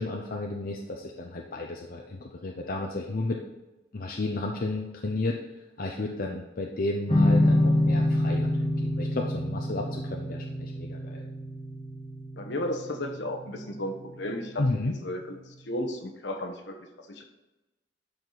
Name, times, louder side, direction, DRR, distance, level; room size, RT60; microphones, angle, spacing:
voice 1, 0.0-3.4 3.9-5.4 5.8-11.2 14.6-15.0, left 2 dB, 50° left, 1 dB, 0.7 m, -32 dB
sound 1, 7.1-14.3, left 1 dB, 30° left, 1.4 m, -27 dB
voice 2, 12.4-14.7 15.0-15.4 15.6-16.8 17.1-17.3, left 1 dB, 70° left, 3 dB, 1.2 m, -33 dB
12.0 x 4.8 x 4.0 m, 1.1 s
head